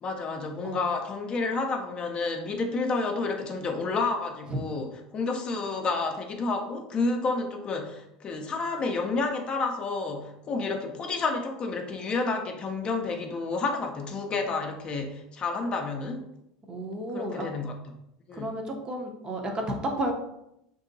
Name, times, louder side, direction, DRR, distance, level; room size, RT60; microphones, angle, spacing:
voice 1, 0.0-16.2 17.1-17.8 18.3-18.5, left 3 dB, 35° left, 3 dB, 0.5 m, -30 dB
voice 2, 16.7-17.5 18.3-20.1, right 1 dB, 30° right, 2 dB, 0.6 m, -32 dB
2.8 x 2.6 x 2.6 m, 0.82 s
hypercardioid pair, 95°, 3 cm